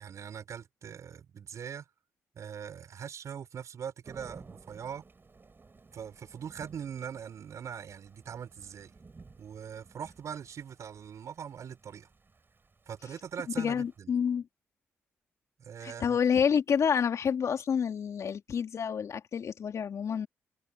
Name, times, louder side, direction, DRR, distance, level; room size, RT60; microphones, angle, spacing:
voice 1, 0.0-1.9 2.3-5.0 5.9-8.9 9.4-12.1 12.9-14.1 15.6-16.2, right 8 dB, 65° right, 4.9 m, -42 dB
Thunder / Rain, 4.0-14.0, right 4 dB, 40° right, 6.7 m, -56 dB
voice 2, 13.6-14.5 15.8-20.3, left 7 dB, 65° left, 3.1 m, -28 dB
hypercardioid pair, 45°, 6 cm